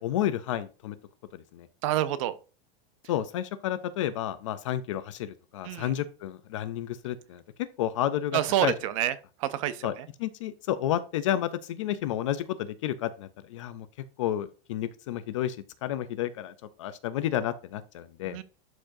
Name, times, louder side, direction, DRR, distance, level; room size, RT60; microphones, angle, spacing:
voice 1, 0.0-1.0 1.3-1.7 3.1-7.4 7.8-8.7 9.8-9.9 10.2-13.9 14.2-18.4, left 11 dB, 30° left, 0.4 m, -31 dB
voice 2, 1.8-2.3 5.6-5.9 8.3-9.1 9.4-9.9 18.3-18.4, right 12 dB, 35° right, 0.5 m, -27 dB
12.0 x 4.5 x 2.6 m
supercardioid pair, 175°, 31 cm